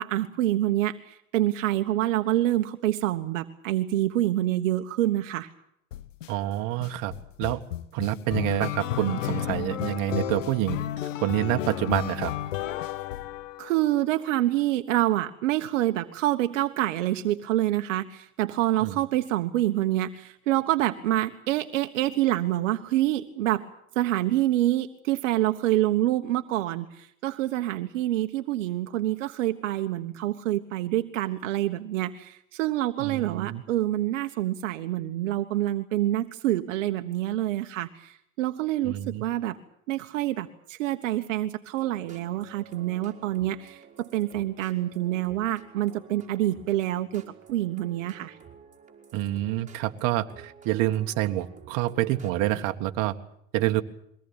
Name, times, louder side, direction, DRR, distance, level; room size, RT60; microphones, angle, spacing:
voice 1, 0.0-5.5 13.6-23.7 23.9-39.6 39.9-47.2 47.5-48.4, right 14 dB, 65° right, 7 dB, 1.3 m, -27 dB
sound 1, 5.9-6.3 6.8-14.0, left 12 dB, 75° left, 1.2 m, -32 dB
voice 2, 6.3-7.1 7.4-7.6 7.9-10.8 11.2-12.3 18.8-19.0 33.0-33.6 38.8-39.2 49.1-53.1 53.5-53.8, right 15 dB, 50° right, 7 dB, 1.6 m, -27 dB
sound 2, 41.8-52.6, right 7 dB, 20° right, 4.3 m, -51 dB
23.0 x 17.5 x 8.8 m, 0.73 s
hypercardioid pair, 105°, 39 cm